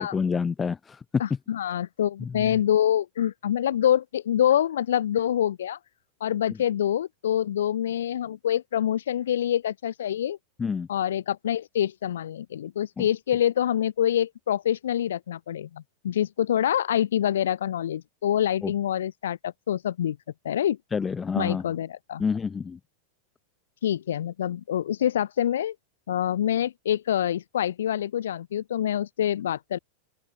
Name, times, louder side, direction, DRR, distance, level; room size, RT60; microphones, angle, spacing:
voice 1, 0.0-1.0 2.2-2.6 10.6-10.9 13.0-13.1 18.6-18.7 20.9-21.6 22.2-22.8, left 5 dB, 15° left, 1.6 m, -28 dB
voice 2, 1.2-5.8 6.2-10.4 10.9-20.2 20.4-20.8 21.3-22.2 23.8-25.7 26.1-29.8, left 10 dB, 60° left, 1.5 m, -26 dB
open air
figure-of-eight pair, 90°, 0 cm